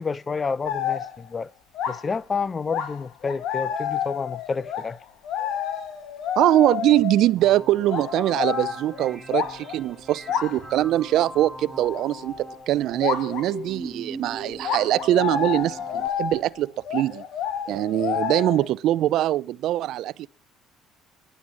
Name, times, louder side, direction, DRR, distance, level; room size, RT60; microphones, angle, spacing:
voice 1, 0.0-1.5 1.9-5.0, left 5 dB, 25° left, 0.6 m, -29 dB
sound 1, 0.7-1.3 1.7-2.1 2.7-7.3 7.9-9.8 10.3-10.6 11.1-11.3 11.9-12.0 13.0-13.5 14.6-18.7, left 9 dB, 65° left, 2.1 m, -29 dB
voice 2, 6.4-17.2 17.7-20.3, right 13 dB, 65° right, 0.6 m, -23 dB
sound 2, 7.4-16.1, right 1 dB, 15° right, 5.4 m, -39 dB
11.0 x 8.9 x 9.9 m
cardioid pair, 100°, 0 cm